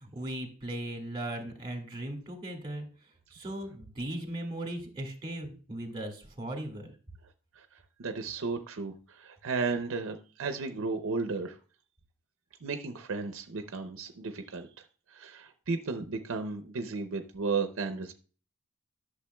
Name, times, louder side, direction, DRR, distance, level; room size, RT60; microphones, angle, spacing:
voice 1, 0.0-2.9 3.3-6.9, right 1 dB, 20° right, 3 dB, 1.9 m, -38 dB
voice 2, 8.0-11.6 12.6-14.7 15.1-18.1, right 4 dB, 65° right, 7 dB, 0.6 m, -34 dB
11.5 x 6.5 x 2.2 m, 0.39 s
head